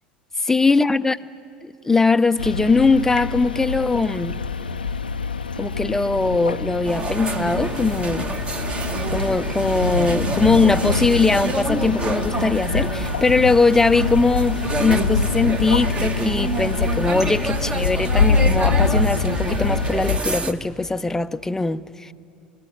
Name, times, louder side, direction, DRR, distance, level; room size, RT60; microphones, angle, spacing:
voice 1, 0.4-1.2 1.6-4.4 5.6-8.3 9.1-22.1, left 3 dB, 10° left, 0.6 m, -20 dB
sound 1, 2.4-20.2, left 4 dB, 80° left, 0.5 m, -25 dB
sound 2, 6.8-20.5, right 3 dB, 20° right, 1.2 m, -28 dB
23.0 x 20.0 x 9.5 m
figure-of-eight pair, 75°, 5 cm